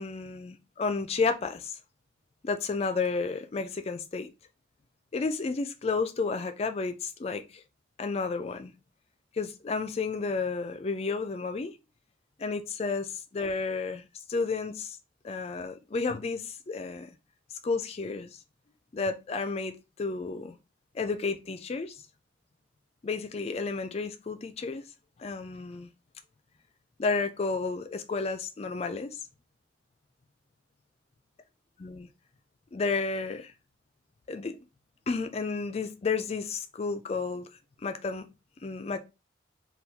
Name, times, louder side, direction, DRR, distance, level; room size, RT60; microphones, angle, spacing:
voice 1, 0.0-1.8 2.4-4.3 5.1-7.6 8.0-8.7 9.3-11.7 12.4-15.0 15.2-17.1 17.6-18.4 18.9-20.6 20.9-22.0 23.0-24.8 25.2-25.9 27.0-29.2 31.8-32.1 32.7-33.5 34.3-34.6 35.1-37.5 37.8-38.2 38.6-39.0, left 4 dB, 30° left, 0.3 m, -31 dB
3.4 x 2.3 x 2.8 m
head